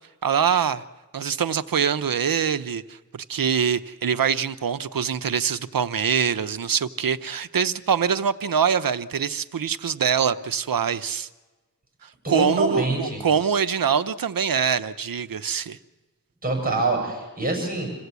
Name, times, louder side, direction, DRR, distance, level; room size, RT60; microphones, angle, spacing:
voice 1, 0.2-0.8 1.1-11.3 12.0-15.8, right 7 dB, 75° right, 12 dB, 0.8 m, -24 dB
voice 2, 12.2-13.2 16.4-17.9, right 2 dB, 25° right, 2 dB, 7.1 m, -25 dB
27.0 x 16.0 x 8.2 m, 1.2 s
wide cardioid pair, 85°, 34 cm